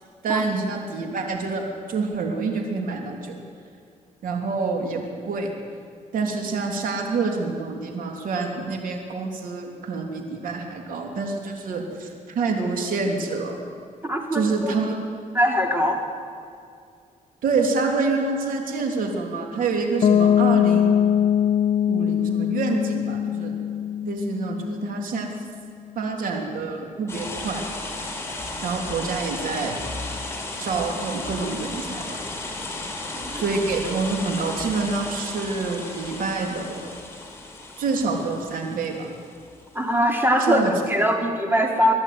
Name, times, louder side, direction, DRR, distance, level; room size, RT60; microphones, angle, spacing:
voice 1, 0.2-3.4 4.2-5.5 6.1-13.6 14.3-14.9 17.4-20.9 21.9-23.5 24.0-25.3 25.9-27.6 28.6-29.8 30.6-32.2 33.3-37.0 37.8-39.1 40.5-40.7, right 4 dB, 80° right, 2 dB, 3.4 m, -27 dB
voice 2, 14.0-14.7 15.3-16.0 33.1-33.4 39.7-41.9, equal, 15° right, 2 dB, 3.8 m, -22 dB
Piano, 20.0-25.7, left 9 dB, 45° left, 0.5 m, -22 dB
sound 1, 27.1-39.6, left 2 dB, 20° left, 4.7 m, -34 dB
23.5 x 12.0 x 9.6 m, 2.3 s
cardioid pair, 95°, 14 cm